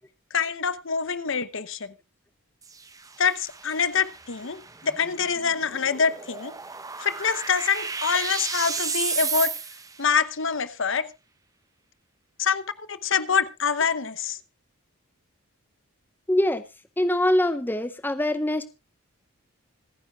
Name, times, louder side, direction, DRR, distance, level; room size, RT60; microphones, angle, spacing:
voice 1, 0.3-1.9 3.2-6.5 7.0-9.5 10.0-11.1 12.4-12.6 12.9-14.4, left 6 dB, 60° left, 14 dB, 0.9 m, -25 dB
sound 1, 2.6-10.0, right 5 dB, 15° right, 0.9 m, -33 dB
voice 2, 16.3-16.6 17.0-18.7, left 1 dB, 10° left, 11 dB, 0.6 m, -23 dB
26.0 x 9.7 x 2.4 m, 0.27 s
head